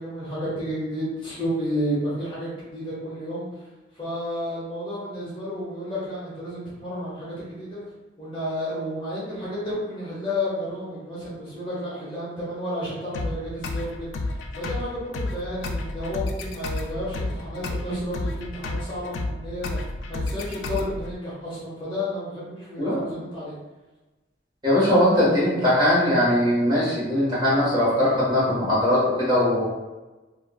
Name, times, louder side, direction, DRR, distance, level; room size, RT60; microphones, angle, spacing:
voice 1, 0.0-3.7 3.9-7.8 8.2-19.8 20.1-23.6, equal, 25° left, -9 dB, 0.9 m, -31 dB
sound 1, 13.1-21.1, left 2 dB, 90° left, 0.4 m, -31 dB
voice 2, 22.8-23.1 24.6-29.6, left 1 dB, 25° right, -10 dB, 1.4 m, -20 dB
3.4 x 2.6 x 2.3 m, 1.1 s
head